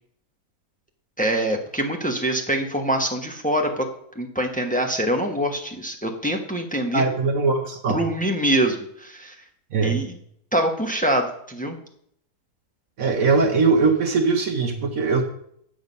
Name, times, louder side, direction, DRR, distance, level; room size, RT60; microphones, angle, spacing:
voice 1, 1.2-3.8 4.1-7.0 7.9-9.3 9.8-10.1 10.5-11.8, right 1 dB, 5° left, 2 dB, 1.0 m, -24 dB
voice 2, 6.9-8.0 9.7-10.1 13.0-15.2, right 4 dB, 60° right, 2 dB, 1.4 m, -21 dB
8.5 x 7.7 x 5.4 m, 0.68 s
omnidirectional pair, 1.7 m